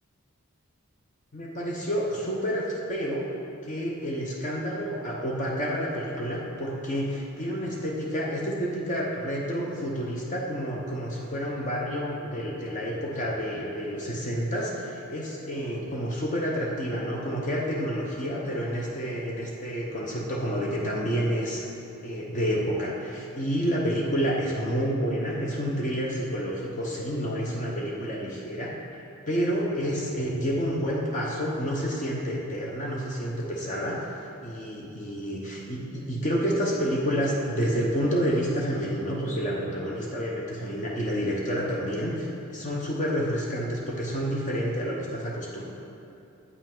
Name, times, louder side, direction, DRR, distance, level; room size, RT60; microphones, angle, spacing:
voice 1, 1.3-2.6 2.9-3.2 3.6-21.6 22.0-34.0 34.4-45.6, equal, 35° left, -3 dB, 0.8 m, -29 dB
8.1 x 5.3 x 3.7 m, 2.7 s
head